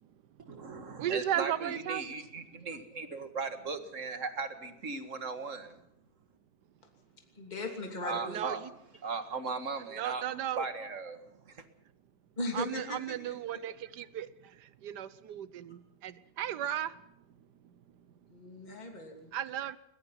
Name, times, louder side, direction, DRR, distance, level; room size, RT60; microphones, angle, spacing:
voice 1, 0.5-5.8 8.0-8.6 9.0-10.2 10.6-11.2 11.5-11.6, right 4 dB, 45° right, 8 dB, 2.0 m, -37 dB
voice 2, 1.0-2.1 8.2-8.7 9.9-10.6 12.5-17.0 17.6-17.7 18.8-19.8, right 11 dB, 70° right, 16 dB, 1.5 m, -36 dB
voice 3, 7.3-8.4 12.4-13.4 18.3-19.3, left 2 dB, 25° left, 2 dB, 3.0 m, -38 dB
21.0 x 21.0 x 5.9 m, 0.79 s
omnidirectional pair, 1.9 m